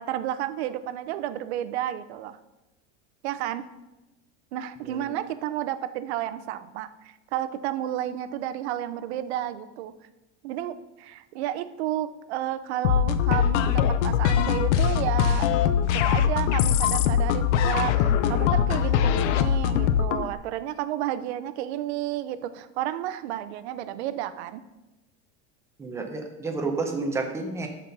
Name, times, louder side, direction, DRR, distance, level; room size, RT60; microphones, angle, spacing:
voice 1, 0.0-2.4 3.2-3.7 4.5-9.9 10.4-15.5 15.9-24.6, right 12 dB, 65° right, 13 dB, 0.7 m, -31 dB
sound 1, 12.8-20.3, left 9 dB, 75° left, 0.7 m, -22 dB
voice 2, 25.8-27.7, right 3 dB, 10° right, 4 dB, 0.6 m, -30 dB
12.5 x 4.4 x 5.3 m, 1.0 s
supercardioid pair, 175°, 36 cm